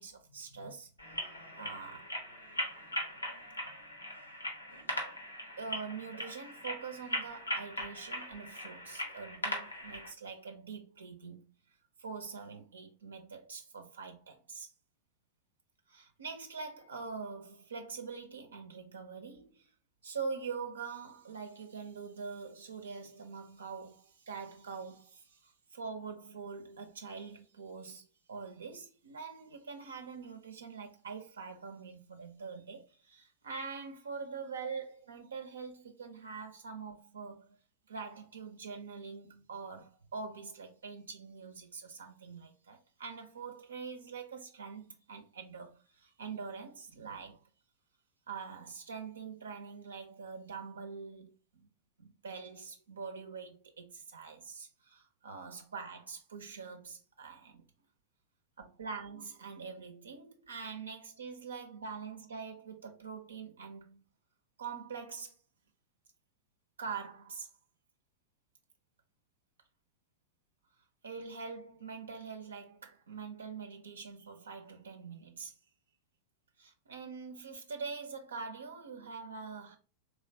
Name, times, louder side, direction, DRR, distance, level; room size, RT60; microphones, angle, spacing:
voice 1, 0.0-2.1 3.6-3.7 5.6-11.5 12.0-14.7 15.9-19.7 20.0-37.6 37.9-47.4 48.3-51.7 52.0-57.7 58.6-64.0 64.6-65.3 66.8-67.5 71.0-75.6 76.6-79.8, right 5 dB, 70° right, 0.6 m, -44 dB
sound 1, 1.0-10.1, equal, 85° left, 1.0 m, -40 dB
3.5 x 3.1 x 2.7 m
figure-of-eight pair, 90°, 0 cm